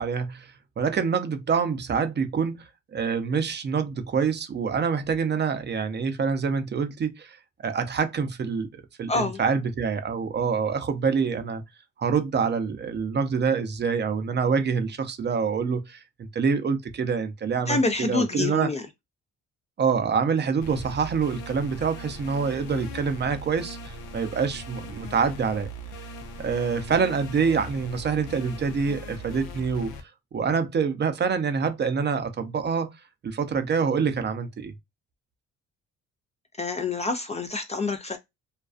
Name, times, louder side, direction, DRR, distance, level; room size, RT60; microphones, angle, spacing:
voice 1, 0.0-2.6 2.9-8.7 9.0-11.6 12.0-18.7 19.8-25.7 26.4-30.0 30.3-32.9 33.2-34.7, right 5 dB, 35° right, 0.5 m, -26 dB
voice 2, 9.1-9.4 17.7-18.8 36.6-38.2, left 3 dB, 25° left, 0.3 m, -27 dB
sound 1, 20.6-30.0, equal, 85° left, 0.6 m, -39 dB
2.4 x 2.2 x 2.3 m
cardioid pair, 90°, 30 cm